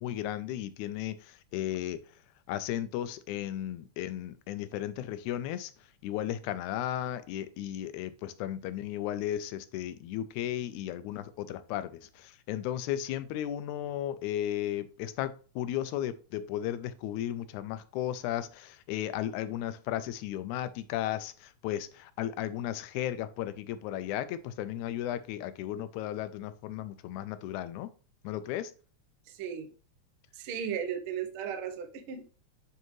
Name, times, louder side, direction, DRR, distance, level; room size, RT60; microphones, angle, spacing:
voice 1, 0.0-2.0 2.5-5.7 6.0-27.9 28.2-28.7, left 12 dB, 85° left, 2.0 m, -35 dB
voice 2, 29.3-29.7 30.3-32.3, right 8 dB, 90° right, 1.1 m, -36 dB
9.2 x 3.4 x 3.1 m
omnidirectional pair, 3.4 m